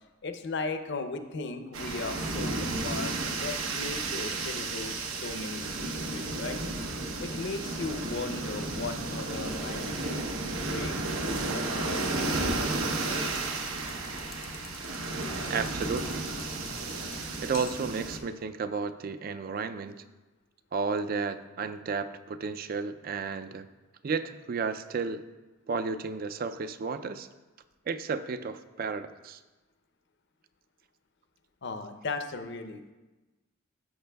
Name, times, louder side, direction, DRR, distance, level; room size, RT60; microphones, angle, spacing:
voice 1, 0.2-6.6 7.2-10.2 10.6-13.3 31.6-32.9, left 3 dB, 55° left, 7 dB, 0.6 m, -37 dB
sound 1, 1.7-18.2, right 2 dB, 85° right, 1.0 m, -33 dB
sound 2, 12.5-18.0, left 8 dB, 85° left, 0.9 m, -51 dB
voice 2, 15.5-16.2 17.4-19.9 20.7-23.7 24.0-25.3 25.7-27.3 27.9-29.4, right 5 dB, 45° right, 10 dB, 0.4 m, -32 dB
13.5 x 6.5 x 2.3 m, 1.2 s
head